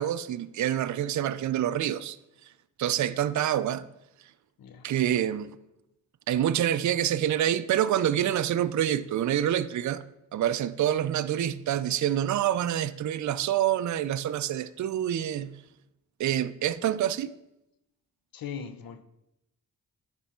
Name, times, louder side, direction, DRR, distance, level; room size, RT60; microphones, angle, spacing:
voice 1, 0.0-2.2 2.8-3.8 4.8-5.6 6.3-10.0 10.3-15.5 16.2-17.3, right 11 dB, 55° right, 0.4 m, -27 dB
voice 2, 18.3-19.0, left 7 dB, 70° left, 0.7 m, -39 dB
9.8 x 3.4 x 4.3 m
cardioid pair, 60°, 36 cm